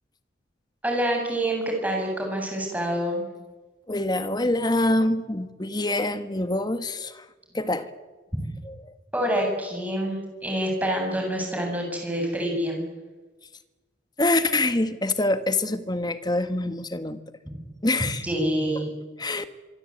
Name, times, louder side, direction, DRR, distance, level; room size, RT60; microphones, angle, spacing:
voice 1, 0.8-3.3 9.1-12.8 18.2-18.9, right 1 dB, 10° right, 1 dB, 7.7 m, -26 dB
voice 2, 3.9-7.2 7.5-7.9 8.6-8.9 14.2-17.2 17.8-18.2 18.7-18.8 19.2-19.4, left 2 dB, 20° left, 10 dB, 1.5 m, -25 dB
25.5 x 24.0 x 8.8 m, 1.3 s
head